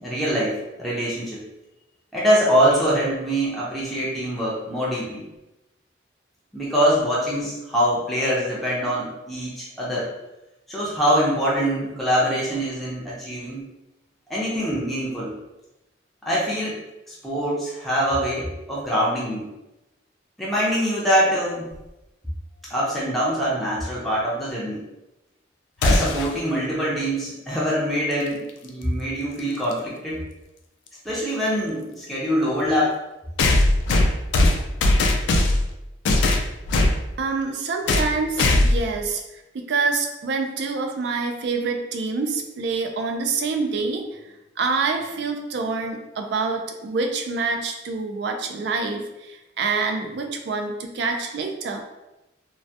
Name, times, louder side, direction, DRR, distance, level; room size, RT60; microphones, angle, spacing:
voice 1, 0.0-1.4 2.1-5.2 6.5-10.1 10.7-13.6 14.3-15.4 16.2-16.8 17.1-19.5 20.4-21.7 22.7-24.8 25.8-30.2 31.0-33.0, equal, ahead, -8 dB, 0.5 m, -24 dB
sound 1, 25.8-26.4 28.5-28.6 29.7-29.8 33.4-35.7 36.1-37.0 37.9-38.1 38.4-38.9, left 2 dB, 75° left, 0.3 m, -19 dB
voice 2, 37.2-51.8, right 4 dB, 65° right, 4 dB, 0.3 m, -26 dB
2.2 x 2.1 x 2.6 m, 0.97 s
head